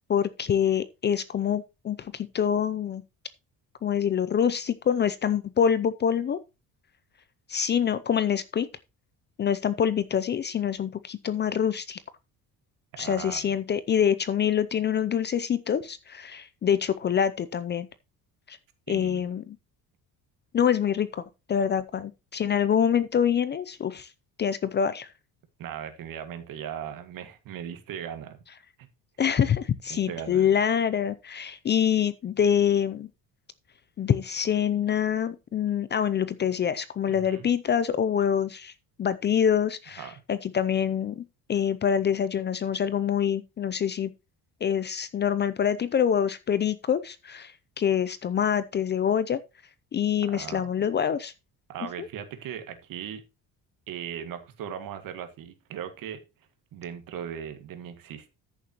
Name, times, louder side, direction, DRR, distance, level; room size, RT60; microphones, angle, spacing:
voice 1, 0.1-3.0 3.8-6.4 7.5-8.7 9.4-12.0 13.0-17.9 18.5-18.6 18.9-19.6 20.5-21.2 21.5-24.1 24.4-25.1 29.2-33.1 34.0-38.7 39.0-44.1 44.6-49.4 49.9-51.3 52.0-52.1, left 8 dB, 30° left, 0.5 m, -25 dB
voice 2, 12.9-13.6 18.9-19.3 25.6-28.4 28.8-28.9 29.9-30.5 37.1-37.5 39.9-40.2 50.3-50.9 51.7-53.2 53.9-56.2 56.7-58.3, right 9 dB, 60° right, 2.0 m, -38 dB
14.0 x 6.9 x 3.0 m
cardioid pair, 165°, 37 cm